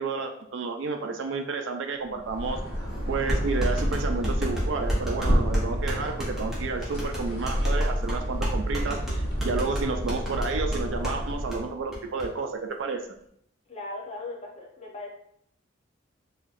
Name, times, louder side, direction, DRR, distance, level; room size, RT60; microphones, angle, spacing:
voice 1, 0.0-13.0, right 4 dB, 80° right, 4 dB, 0.4 m, -31 dB
sound 1, 2.2-11.7, equal, 75° left, 1.3 m, -29 dB
sound 2, 2.4-2.5 3.3-11.2 11.5-11.6 11.9-12.3, equal, ahead, 0.9 m, -33 dB
voice 2, 13.7-15.1, left 2 dB, 35° left, -2 dB, 0.8 m, -38 dB
4.0 x 2.9 x 2.5 m, 0.69 s
head